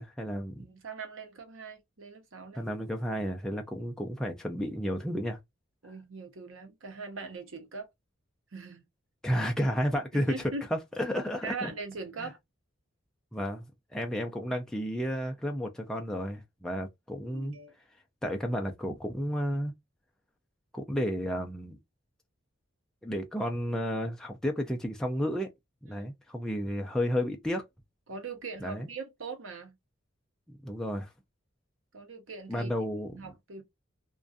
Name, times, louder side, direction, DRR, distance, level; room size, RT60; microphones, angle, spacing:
voice 1, 0.0-0.6 2.6-5.4 9.2-10.3 10.7-11.5 12.2-12.3 13.3-13.6 13.9-17.6 18.2-19.7 20.7-21.8 23.0-25.5 25.8-27.6 28.6-28.9 30.5-31.1 32.5-33.1, equal, 5° left, 0.3 m, -32 dB
voice 2, 0.6-2.7 5.8-7.9 8.5-8.9 10.1-10.7 11.4-12.4 17.3-17.7 25.9-26.1 28.1-29.8 31.9-32.7 33.0-33.6, right 4 dB, 80° right, 0.8 m, -41 dB
2.5 x 2.2 x 2.4 m
head